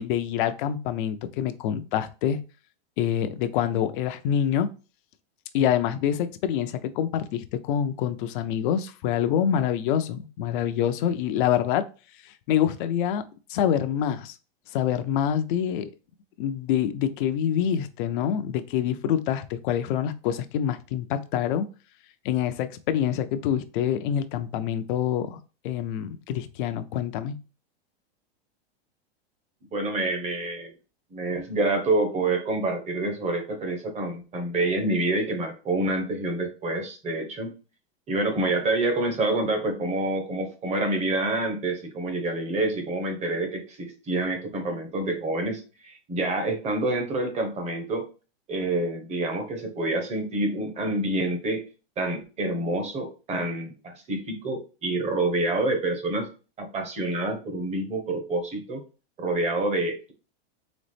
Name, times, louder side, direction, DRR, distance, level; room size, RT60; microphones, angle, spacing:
voice 1, 0.0-2.4 3.0-4.7 5.5-11.8 12.2-13.2 13.5-14.4 14.7-15.9 16.4-21.7 22.2-25.4 25.6-27.3, left 9 dB, 50° left, 0.6 m, -26 dB
voice 2, 29.7-30.7 31.1-37.5 38.1-48.1 48.5-51.6 52.0-56.3 56.6-58.8 59.2-60.1, right 2 dB, 20° right, 1.0 m, -27 dB
4.1 x 3.5 x 3.3 m
supercardioid pair, 140°, 32 cm